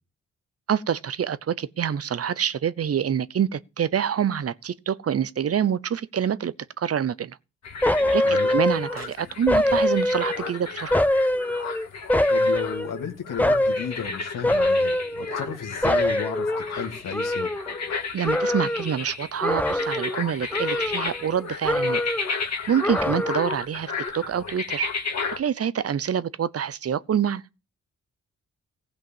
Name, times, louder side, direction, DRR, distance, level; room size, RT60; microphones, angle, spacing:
voice 1, 0.7-7.4 8.1-11.0 18.1-22.0 22.7-24.9 25.4-27.4, right 8 dB, 50° right, 0.7 m, -26 dB
sound 1, 7.6-25.4, left 5 dB, 60° left, 1.9 m, -33 dB
sound 2, 7.8-9.1 9.5-10.5 10.9-13.0 13.4-14.0 14.4-15.6 15.8-18.0 18.2-18.9 19.4-20.2 20.5-21.4 21.6-22.4 22.8-23.6 24.0-24.1, left 1 dB, 5° left, 0.9 m, -24 dB
voice 2, 8.2-8.5 12.3-17.5, left 7 dB, 80° left, 2.1 m, -33 dB
15.5 x 5.5 x 7.3 m
supercardioid pair, 50°, 31 cm